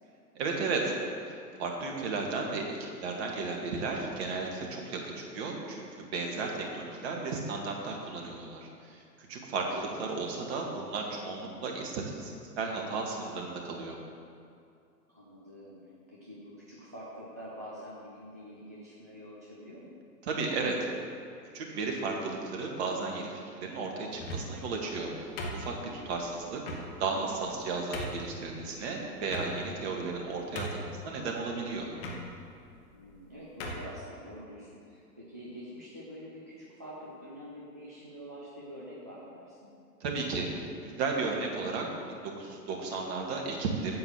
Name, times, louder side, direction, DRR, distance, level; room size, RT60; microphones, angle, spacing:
voice 1, 0.3-0.9 1.3-14.0 20.2-20.9 21.5-26.6 27.0-31.9 40.0-41.8 42.1-44.0, right 3 dB, 40° right, 0 dB, 2.0 m, -34 dB
voice 2, 9.6-9.9 15.1-19.9 32.9-39.7, equal, 10° right, -6 dB, 0.3 m, -46 dB
sound 1, 24.1-24.7 25.4-26.0 26.6-26.9 27.4-27.5 27.9-28.3 29.3-29.8 30.2-30.3 30.6-31.0 32.0-32.2 33.0-33.2 33.6-33.9, equal, 35° left, 1.7 m, -37 dB
9.2 x 7.8 x 6.9 m, 2.5 s
figure-of-eight pair, 110°, 49 cm